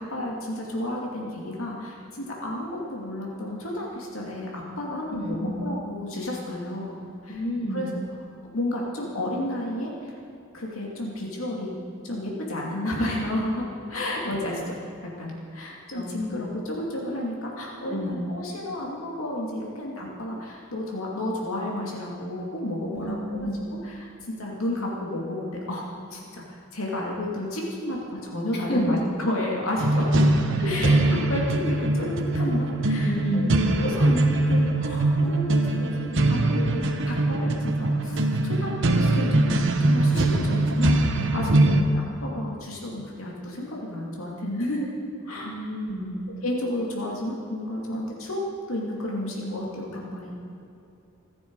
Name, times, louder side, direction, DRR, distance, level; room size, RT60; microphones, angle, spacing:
voice 1, 0.0-7.4 7.7-7.9 8.5-10.1 10.5-14.8 15.2-23.5 23.8-25.8 26.1-30.1 30.6-31.0 31.3-33.5 33.8-44.9 45.2-45.5 46.4-48.4 48.7-50.3, left 1 dB, 75° left, -2 dB, 2.6 m, -32 dB
voice 2, 5.1-5.7 7.3-7.9 15.9-16.4 17.9-18.3 22.9-23.5 28.5-29.0 30.6-31.2 33.0-33.6 41.4-41.9 45.4-46.2, equal, 50° left, -2 dB, 2.9 m, -30 dB
sound 1, 29.8-41.8, right 2 dB, 65° right, 1.2 m, -22 dB
26.5 x 9.6 x 4.8 m, 2.7 s
head